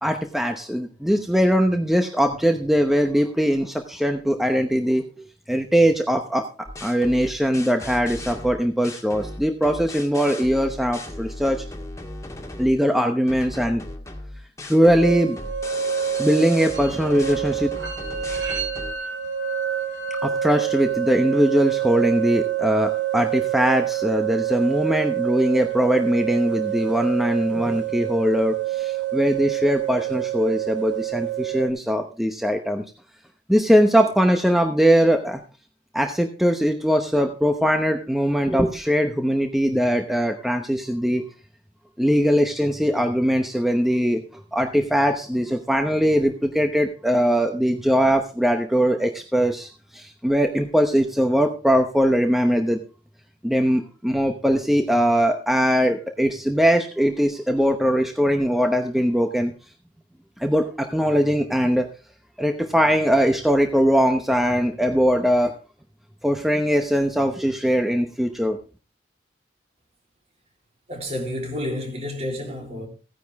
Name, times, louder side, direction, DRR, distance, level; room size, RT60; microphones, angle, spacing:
voice 1, 0.0-5.1 5.5-6.5 6.8-11.6 12.6-13.8 14.7-15.4 16.2-17.8 20.2-32.8 33.5-35.4 35.9-41.2 42.0-52.8 53.4-59.5 60.4-61.9 62.4-65.6 66.2-68.6, equal, ahead, 0.9 m, -21 dB
sound 1, 6.6-12.8 13.3-18.9, left 1 dB, 20° left, 1.8 m, -37 dB
sound 2, 15.0-31.7, right 11 dB, 80° right, 2.5 m, -27 dB
voice 2, 70.9-72.9, left 1 dB, 35° right, 3.6 m, -30 dB
15.5 x 10.0 x 3.5 m
head